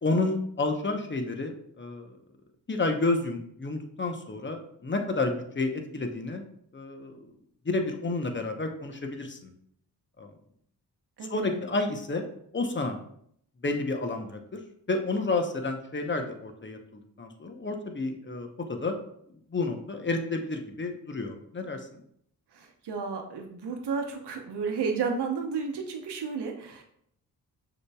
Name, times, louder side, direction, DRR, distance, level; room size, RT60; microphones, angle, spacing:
voice 1, 0.0-2.2 2.7-6.4 6.7-7.3 7.6-9.5 10.2-10.3 11.3-12.3 12.5-13.0 13.6-14.6 14.9-19.0 19.5-21.8, left 3 dB, 25° left, 5 dB, 0.9 m, -30 dB
voice 2, 11.2-11.7 22.5-26.8, right 5 dB, 70° right, 3 dB, 1.0 m, -32 dB
6.3 x 3.0 x 2.3 m, 0.68 s
supercardioid pair, 50°, 43 cm